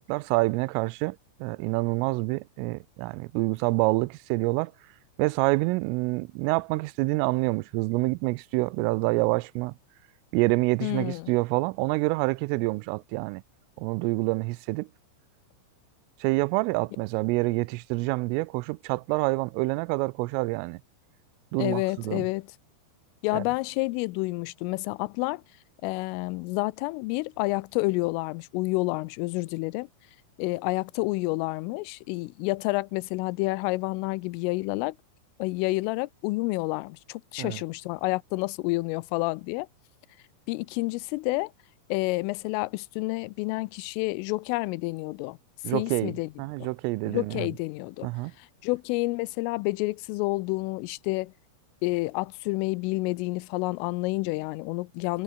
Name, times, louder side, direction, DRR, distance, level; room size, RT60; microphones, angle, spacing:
voice 1, 0.0-4.7 5.2-9.7 10.3-13.4 13.8-14.9 16.2-20.8 21.5-22.3 23.3-23.4 37.4-37.6 45.6-46.1 46.4-47.5 48.0-48.3, right 24 dB, 90° right, 3.2 m, -27 dB
voice 2, 10.8-11.3 21.6-22.6 23.2-25.4 25.8-29.9 30.4-35.0 35.4-39.7 40.5-41.5 41.9-45.4 45.7-46.3 47.1-48.1 48.4-51.3 51.8-55.2, left 23 dB, 90° left, 3.2 m, -29 dB
omnidirectional pair, 5.7 m